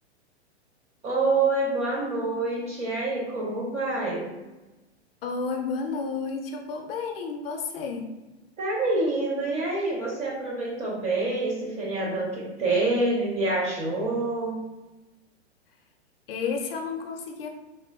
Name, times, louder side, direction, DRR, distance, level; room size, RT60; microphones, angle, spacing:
voice 1, 1.0-4.3 8.6-14.6, right 2 dB, 20° right, -3 dB, 0.4 m, -27 dB
voice 2, 5.2-8.1 16.3-17.5, left 5 dB, 55° left, 3 dB, 0.5 m, -31 dB
3.0 x 2.1 x 2.2 m, 1.1 s
hypercardioid pair, 115°, 35 cm